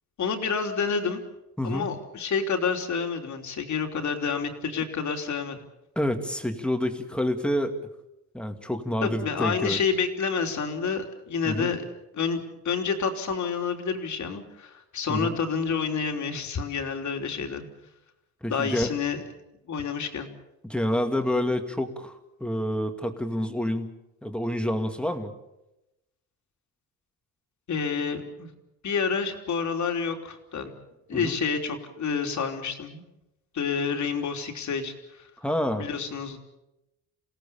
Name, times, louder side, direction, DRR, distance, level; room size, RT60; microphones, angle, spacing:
voice 1, 0.2-1.2 1.6-5.6 9.0-11.8 12.1-17.7 18.5-19.2 19.7-20.3 27.7-28.5 28.8-30.7 31.1-33.0 33.5-35.3 35.8-36.4, left 5 dB, 55° left, 4 dB, 3.5 m, -29 dB
voice 2, 1.6-1.9 6.0-7.8 8.3-9.8 11.4-11.7 15.1-15.3 18.4-18.9 20.6-23.9 24.2-25.3 31.1-31.4 35.4-35.9, left 1 dB, 5° left, 6 dB, 2.2 m, -28 dB
29.0 x 17.5 x 7.1 m, 0.92 s
cardioid pair, 140°, 34 cm